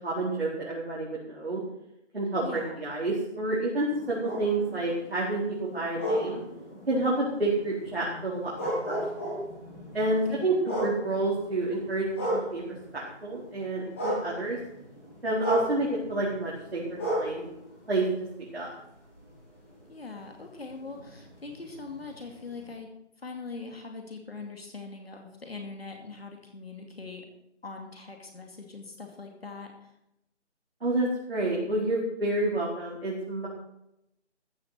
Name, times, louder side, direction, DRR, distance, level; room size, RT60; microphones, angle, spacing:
voice 1, 0.0-1.6 2.1-6.4 6.9-7.1 7.4-9.0 9.2-9.4 9.9-12.1 12.3-12.6 12.9-14.6 15.2-17.5 17.9-18.0 18.5-18.7 30.8-33.5, right 2 dB, 55° right, -5 dB, 4.3 m, -29 dB
voice 2, 2.4-2.8 10.1-10.5 19.9-22.9 23.2-27.3 27.6-29.9, left 4 dB, 55° left, 3 dB, 2.5 m, -42 dB
sound 1, 3.8-13.1 13.4-18.7 19.1-22.7, right 1 dB, 10° left, 2.6 m, -35 dB
14.0 x 7.4 x 7.9 m, 0.82 s
figure-of-eight pair, 180°, 36 cm